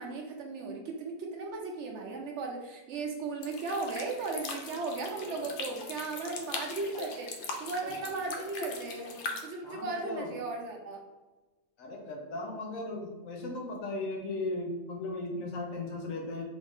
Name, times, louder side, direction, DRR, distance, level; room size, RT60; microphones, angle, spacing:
voice 1, 0.0-7.3 7.6-9.1 9.4-11.0, right 3 dB, 65° right, 2 dB, 0.8 m, -36 dB
sound 1, 3.4-9.4, left 3 dB, 60° left, 0.6 m, -40 dB
voice 2, 9.6-10.3 11.8-16.4, left 2 dB, 75° left, 0 dB, 1.2 m, -37 dB
3.8 x 2.5 x 3.5 m, 1.2 s
omnidirectional pair, 1.4 m